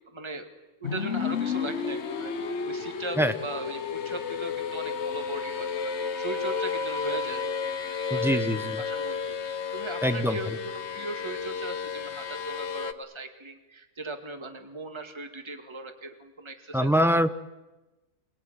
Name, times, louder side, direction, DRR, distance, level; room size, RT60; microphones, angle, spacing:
voice 1, 0.1-0.5 0.8-16.9, right 3 dB, 20° right, 6 dB, 2.1 m, -39 dB
sound 1, 0.8-12.9, left 6 dB, 50° left, 1.2 m, -32 dB
voice 2, 8.1-8.8 10.0-10.4 16.7-17.4, equal, ahead, 9 dB, 0.9 m, -24 dB
27.0 x 20.0 x 9.4 m, 1.1 s
omnidirectional pair, 1.6 m